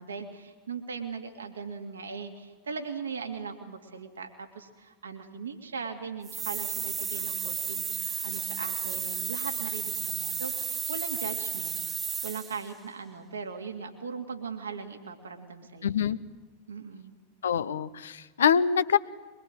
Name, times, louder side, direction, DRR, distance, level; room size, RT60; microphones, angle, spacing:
voice 1, 0.0-11.8 12.2-15.9 16.7-17.1, right 5 dB, 70° right, 4 dB, 2.6 m, -39 dB
sound 1, 6.2-12.7, right 6 dB, 20° right, 0.9 m, -33 dB
voice 2, 15.8-16.2 17.4-19.0, left 7 dB, 65° left, 14 dB, 0.8 m, -25 dB
23.5 x 21.5 x 7.8 m, 1.3 s
figure-of-eight pair, 90°, 0 cm